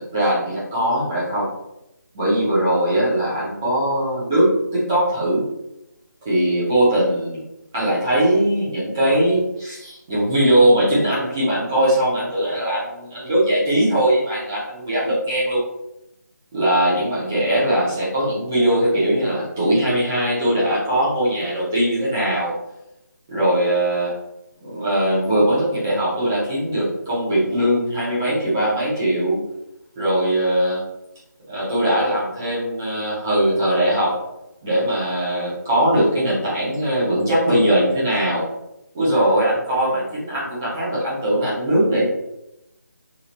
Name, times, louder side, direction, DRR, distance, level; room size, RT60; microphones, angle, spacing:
voice 1, 0.1-1.5 2.1-5.4 6.2-7.4 7.7-15.7 16.5-22.6 23.3-24.1 24.6-29.4 30.0-30.8 31.5-34.2 34.6-38.4 38.9-42.0, right 1 dB, 10° right, -9 dB, 0.5 m, -20 dB
3.0 x 2.9 x 2.4 m, 0.88 s
figure-of-eight pair, 175°, 10 cm